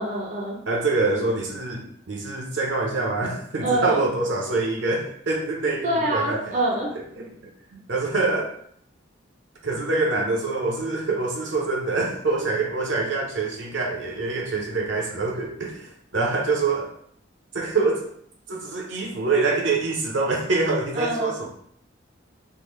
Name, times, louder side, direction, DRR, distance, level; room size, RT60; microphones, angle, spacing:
voice 1, 0.0-0.6 3.6-4.0 5.8-6.9 20.9-21.4, right 1 dB, 40° right, -3 dB, 0.5 m, -25 dB
voice 2, 0.7-6.4 7.2-8.5 9.6-16.9 17.5-18.1 18.5-21.5, right 3 dB, 70° right, 0 dB, 0.7 m, -25 dB
3.6 x 2.1 x 3.1 m, 0.64 s
head